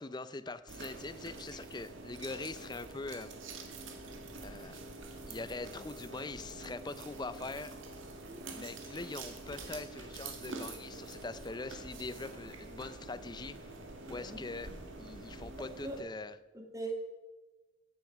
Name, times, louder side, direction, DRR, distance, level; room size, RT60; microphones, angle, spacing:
voice 1, 0.0-3.3 4.4-4.8 5.3-7.8 8.5-13.7 14.1-14.7 15.0-16.3, left 3 dB, 20° left, 14 dB, 0.5 m, -42 dB
sound 1, 0.7-16.0, right 3 dB, 70° right, 1.8 m, -47 dB
sound 2, 3.8-16.1, equal, 80° left, 2.5 m, -59 dB
voice 2, 8.3-8.7 14.1-14.4 15.6-16.0 16.5-17.0, right 2 dB, 15° right, 3 dB, 2.0 m, -42 dB
14.5 x 9.4 x 5.9 m, 1.2 s
head